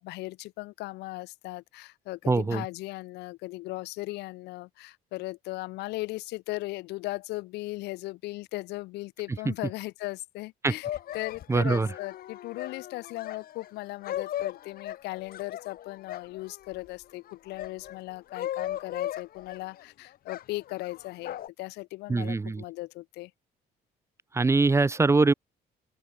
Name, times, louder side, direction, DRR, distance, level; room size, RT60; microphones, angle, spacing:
voice 1, 0.0-10.9 11.1-23.3, left 20 dB, 90° left, 1.4 m, -37 dB
voice 2, 2.3-2.6 10.6-10.7 11.5-11.9 22.1-22.6 24.3-25.3, right 3 dB, 15° right, 0.7 m, -23 dB
sound 1, 10.8-16.8 17.3-19.8 20.3-21.5, left 12 dB, 60° left, 1.8 m, -37 dB
open air
cardioid pair, 110°, 17 cm